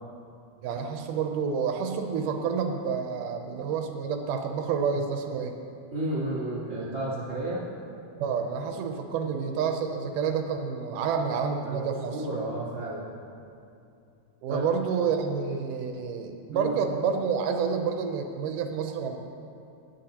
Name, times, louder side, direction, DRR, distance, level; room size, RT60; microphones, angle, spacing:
voice 1, 0.6-5.5 8.2-12.3 14.4-19.2, right 6 dB, 85° right, 4 dB, 2.3 m, -29 dB
voice 2, 5.9-7.6 11.6-13.1 14.5-14.6 16.5-16.8, right 2 dB, 25° right, -9 dB, 3.3 m, -32 dB
17.5 x 10.5 x 2.9 m, 2.6 s
omnidirectional pair, 3.6 m